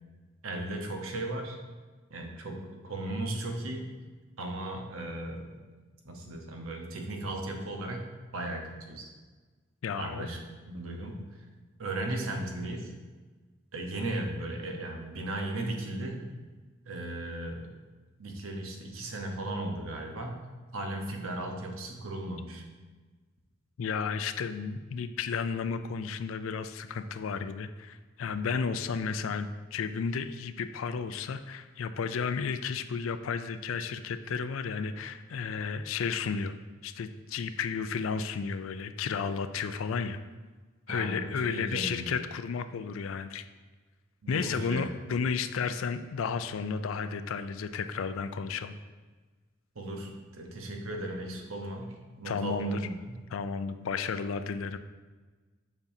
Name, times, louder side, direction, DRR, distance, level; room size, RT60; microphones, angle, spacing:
voice 1, 0.4-1.6 2.1-3.9 4.4-5.6 6.0-8.1 8.3-9.1 10.0-10.4 10.6-11.5 11.8-12.9 13.7-16.3 16.9-17.7 18.2-20.4 20.7-22.6 40.9-42.1 44.2-44.8 49.7-53.0, right 1 dB, 90° right, 2 dB, 1.0 m, -36 dB
voice 2, 9.8-10.3 23.8-36.5 36.8-40.2 40.9-43.5 44.3-48.7 52.2-52.8 53.3-54.8, left 5 dB, 80° left, 11 dB, 0.4 m, -33 dB
7.2 x 5.3 x 2.7 m, 1.3 s
head